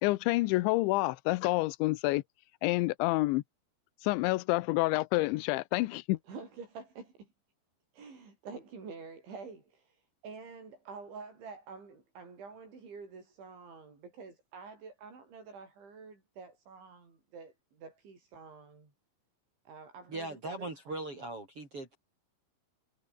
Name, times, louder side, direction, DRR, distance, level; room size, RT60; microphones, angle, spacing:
voice 1, 0.0-2.2 2.6-3.4 4.0-6.2, left 21 dB, 85° left, 3.1 m, -28 dB
voice 2, 6.2-7.3 7.9-18.9 19.7-20.7, right 4 dB, 75° right, 10.0 m, -48 dB
voice 3, 20.1-22.0, right 2 dB, 30° right, 5.0 m, -39 dB
omnidirectional pair, 5.4 m